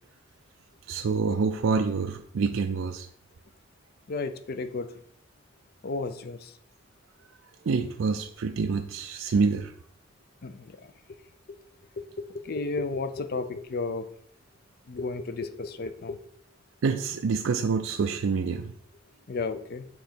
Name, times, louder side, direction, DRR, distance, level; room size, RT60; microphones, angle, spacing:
voice 1, 0.9-3.1 7.7-9.7 16.8-18.7, right 4 dB, 85° right, 6 dB, 0.4 m, -27 dB
voice 2, 4.1-4.9 5.8-6.5 10.4-10.8 11.5-11.6 12.0-12.1 12.4-14.1 14.9-16.2 19.3-19.9, left 3 dB, 50° left, 10 dB, 0.5 m, -33 dB
7.1 x 3.9 x 4.4 m, 0.65 s
head